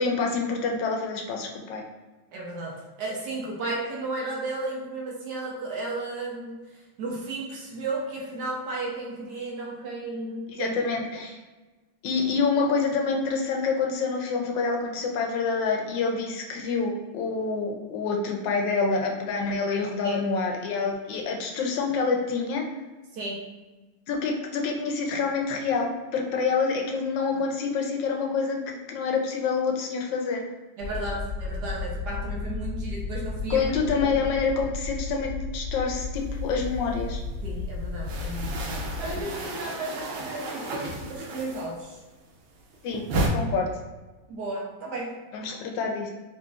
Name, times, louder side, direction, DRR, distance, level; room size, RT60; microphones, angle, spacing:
voice 1, 0.0-1.8 10.5-11.4 12.0-22.6 24.1-30.4 33.5-37.2 42.8-43.0 43.3-43.7 45.3-46.1, left 4 dB, 70° left, 2 dB, 1.2 m, -27 dB
voice 2, 2.3-6.6 7.0-10.8 20.0-20.2 23.1-23.4 30.8-33.7 34.0-34.1 37.4-42.0 44.3-45.2, right 2 dB, 65° right, -2 dB, 1.1 m, -34 dB
sound 1, 30.8-39.2, left 3 dB, 40° right, 1.5 m, -33 dB
sound 2, 36.3-37.3 37.5-42.0 42.3-43.3, right 2 dB, 80° right, 1.5 m, -33 dB
3.9 x 3.1 x 2.4 m, 1.2 s
omnidirectional pair, 2.2 m